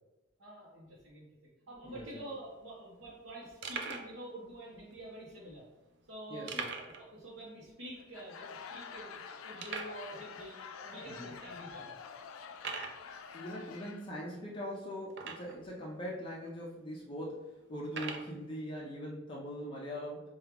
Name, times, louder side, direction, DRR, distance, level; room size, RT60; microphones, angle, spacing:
voice 1, 0.4-1.3 1.7-5.6 6.1-6.5 6.8-12.0, right 1 dB, 75° right, -6 dB, 0.8 m, -47 dB
voice 2, 1.8-2.3 6.3-6.7 11.1-11.3 13.3-20.2, equal, 25° left, -4 dB, 0.5 m, -41 dB
sound 1, 2.2-2.3 2.4-2.6 3.1-3.2 3.6-4.1 4.9-5.0 6.5-7.1 7.3-7.4 7.9-8.0 8.6-8.7 9.6-10.0 10.8-10.9 11.5-11.6 12.6-13.0 15.1-15.7 16.5-16.6 17.9-18.3, right 5 dB, 60° right, 0.4 m, -40 dB
Laughter / Crowd, 8.0-14.2, left 6 dB, 90° left, 0.4 m, -47 dB
4.4 x 2.3 x 3.3 m, 1.0 s
head